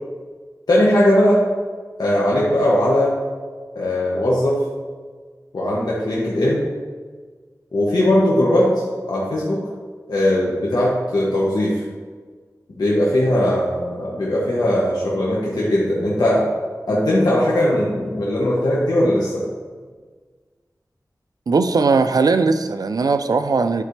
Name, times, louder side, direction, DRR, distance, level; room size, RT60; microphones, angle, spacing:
voice 1, 0.7-1.4 2.0-3.1 3.7-4.6 5.5-6.6 7.7-8.7 9.1-9.6 10.1-11.8 12.8-16.4 16.9-19.4, left 1 dB, 90° left, -6 dB, 1.2 m, -19 dB
voice 2, 21.5-23.8, right 4 dB, 75° right, 10 dB, 0.4 m, -18 dB
11.5 x 4.2 x 3.3 m, 1.5 s
wide cardioid pair, 60°, 7 cm